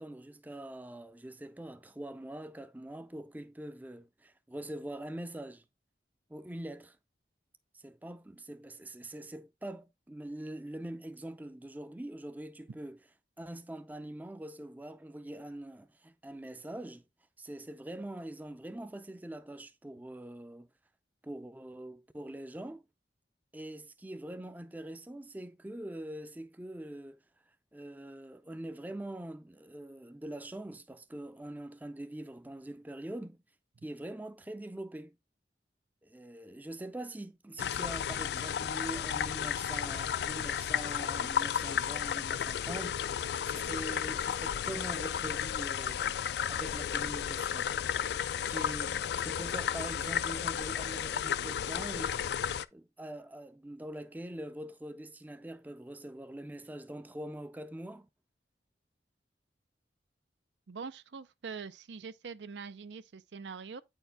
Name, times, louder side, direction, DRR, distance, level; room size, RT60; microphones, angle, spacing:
voice 1, 0.0-5.6 6.3-7.0 7.7-13.0 13.4-17.0 17.4-20.7 21.2-22.8 23.5-33.4 33.8-35.2 36.0-47.7 48.5-52.2 52.7-58.1, right 1 dB, 10° right, 0.4 m, -43 dB
sound 1, 37.6-52.6, left 9 dB, 70° left, 0.3 m, -33 dB
voice 2, 60.7-63.8, right 5 dB, 90° right, 0.5 m, -43 dB
8.9 x 4.5 x 3.3 m
head